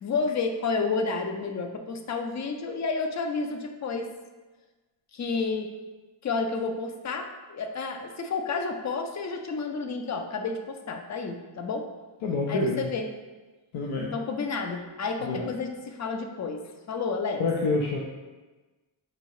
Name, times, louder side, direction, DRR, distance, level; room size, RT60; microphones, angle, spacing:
voice 1, 0.0-4.1 5.1-5.7 6.2-10.6 10.9-11.8 12.5-13.1 14.1-16.6 16.9-17.4, left 4 dB, 40° left, 5 dB, 0.4 m, -30 dB
voice 2, 12.2-12.9 13.7-14.1 15.2-15.4 17.4-18.0, left 3 dB, 90° left, -2 dB, 0.6 m, -27 dB
6.1 x 2.7 x 3.0 m, 1.2 s
wide cardioid pair, 150°, 48 cm